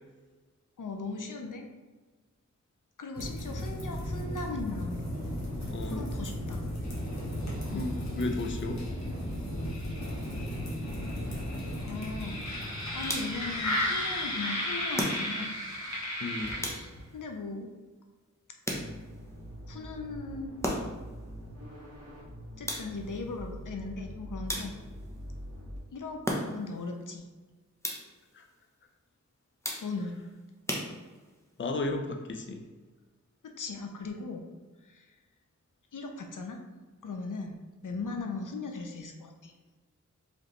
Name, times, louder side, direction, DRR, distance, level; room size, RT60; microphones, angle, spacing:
voice 1, 0.8-1.7 3.0-5.0 5.9-6.6 7.7-7.9 11.8-12.5 12.9-15.6 17.1-17.7 19.7-20.5 22.6-24.8 25.9-26.2 26.5-27.2 29.8-30.2 33.6-34.4 34.8-35.1 35.9-36.6 37.0-39.5, left 3 dB, 85° left, 3 dB, 0.6 m, -38 dB
sound 1, 3.2-17.1, left 1 dB, 60° left, 1.2 m, -34 dB
voice 2, 5.7-6.1 7.6-8.8 16.2-16.6 28.3-28.4 31.6-32.6, left 2 dB, 40° left, 4 dB, 0.5 m, -34 dB
sound 2, 13.0-13.5 14.9-15.6 16.6-17.2 18.6-19.2 20.6-21.1 22.7-23.2 24.5-25.1 26.2-26.8 27.8-28.3 29.6-30.2 30.7-31.4, equal, 10° left, 0.8 m, -35 dB
sound 3, 18.7-25.8, equal, 55° right, 1.2 m, -44 dB
4.9 x 3.1 x 3.1 m, 1.3 s
wide cardioid pair, 75°, 31 cm